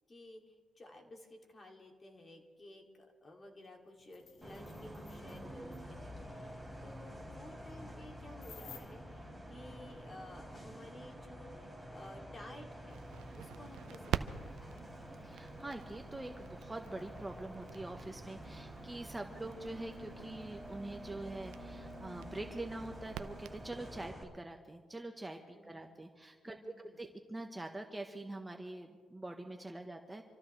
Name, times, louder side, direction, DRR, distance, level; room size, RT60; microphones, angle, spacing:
voice 1, 0.1-13.0 13.3-14.8 25.5-26.0 26.4-27.0, left 1 dB, 30° left, 2 dB, 2.8 m, -55 dB
sound 1, 3.6-3.7 4.0-5.4 5.7-5.8 8.4-8.8, left 6 dB, 65° left, 2.0 m, -55 dB
Bus, 4.4-24.2, equal, 5° left, 4.6 m, -49 dB
Crackle, 12.9-24.1, right 10 dB, 85° right, 0.6 m, -46 dB
voice 2, 15.2-30.2, right 2 dB, 15° right, 4 dB, 1.3 m, -45 dB
27.5 x 13.5 x 3.4 m, 1.5 s
cardioid pair, 90°, 0 cm